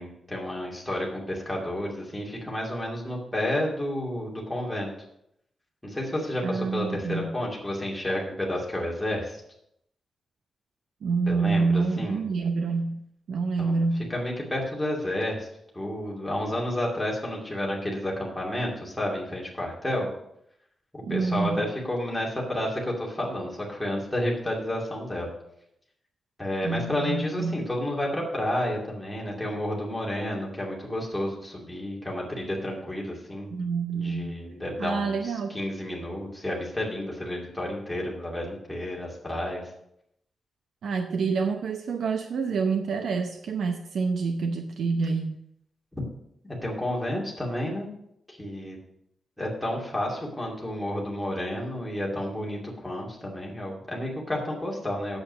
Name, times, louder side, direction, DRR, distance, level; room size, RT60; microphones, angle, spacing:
voice 1, 0.0-4.9 5.8-9.4 11.3-12.2 13.6-13.8 14.1-15.5 15.7-20.1 20.9-25.3 26.4-33.5 33.9-39.6 45.9-46.0 46.4-47.9 48.3-48.8 49.4-55.2, left 1 dB, 5° left, -3 dB, 2.6 m, -31 dB
voice 2, 6.4-7.3 11.0-13.0 13.3-14.1 21.0-21.6 26.6-27.6 33.5-34.4 34.8-35.6 40.8-45.4, right 4 dB, 80° right, 5 dB, 0.7 m, -27 dB
8.7 x 8.0 x 5.6 m, 0.76 s
wide cardioid pair, 170°, 0 cm